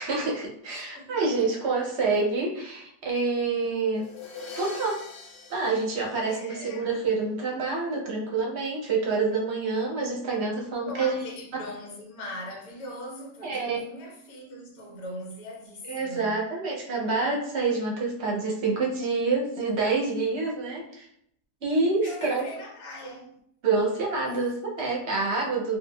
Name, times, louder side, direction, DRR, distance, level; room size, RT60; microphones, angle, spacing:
voice 1, 0.0-4.0 4.6-5.0 5.5-11.2 13.4-13.8 15.9-21.1 21.6-22.5 23.6-25.8, right 3 dB, 55° right, 0.8 m, -27 dB
voice 2, 0.8-1.3 6.3-6.9 10.8-16.4 22.0-23.3, left 1 dB, 70° left, 1.2 m, -40 dB
sound 1, 4.0-6.9, left 4 dB, 90° left, 1.1 m, -44 dB
3.7 x 2.4 x 2.2 m
omnidirectional pair, 1.6 m